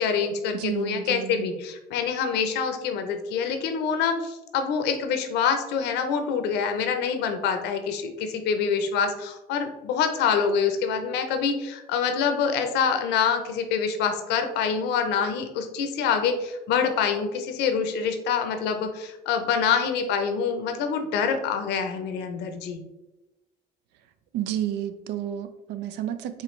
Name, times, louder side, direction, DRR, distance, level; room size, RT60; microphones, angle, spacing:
voice 1, 0.0-22.8, left 6 dB, 85° left, 7 dB, 0.7 m, -26 dB
voice 2, 0.5-1.5 24.3-26.4, right 11 dB, 85° right, 11 dB, 0.5 m, -31 dB
4.8 x 3.2 x 3.2 m, 0.98 s
cardioid pair, 110°, 17 cm